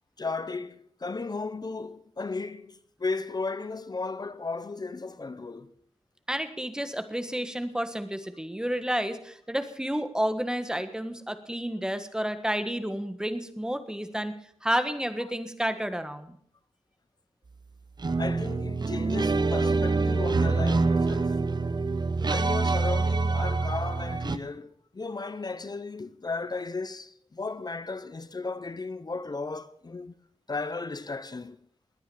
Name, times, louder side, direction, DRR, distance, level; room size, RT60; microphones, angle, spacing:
voice 1, 0.2-5.7 18.2-21.4 22.3-30.1 30.5-31.6, left 3 dB, 35° left, 0.7 m, -35 dB
voice 2, 6.3-16.4, equal, 5° right, 1.4 m, -31 dB
sound 1, 18.0-24.4, right 3 dB, 40° right, 0.7 m, -26 dB
20.0 x 9.3 x 6.9 m
wide cardioid pair, 125°, 11 cm